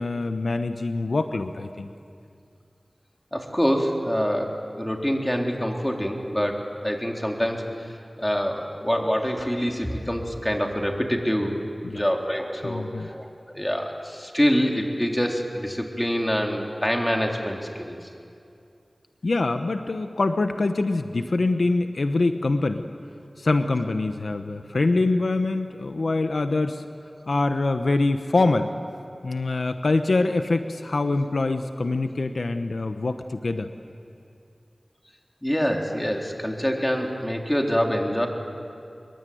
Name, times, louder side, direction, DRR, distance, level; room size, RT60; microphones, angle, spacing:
voice 1, 0.0-1.9 11.8-12.0 12.6-13.1 19.2-22.8 23.4-26.8 27.3-28.7 29.2-33.7, left 2 dB, 85° left, 8 dB, 1.0 m, -24 dB
voice 2, 3.3-7.7 8.2-11.7 12.0-18.1 35.4-38.3, equal, 10° left, 1 dB, 3.6 m, -25 dB
25.5 x 23.0 x 9.4 m, 2.5 s
wide cardioid pair, 50°, 0 cm